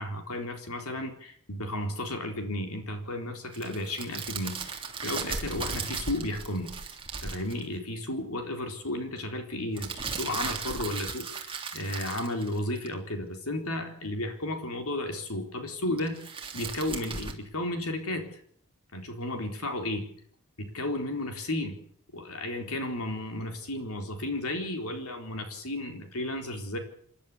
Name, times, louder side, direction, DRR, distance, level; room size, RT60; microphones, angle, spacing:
voice 1, 0.0-6.7 7.2-16.2 16.5-18.4 18.9-20.1 20.6-21.8 22.1-26.8, left 1 dB, 70° left, 5 dB, 4.1 m, -33 dB
sound 1, 3.5-7.6 9.8-12.9 16.0-17.3, right 5 dB, 25° right, 3.1 m, -36 dB
28.5 x 11.5 x 8.6 m, 0.62 s
head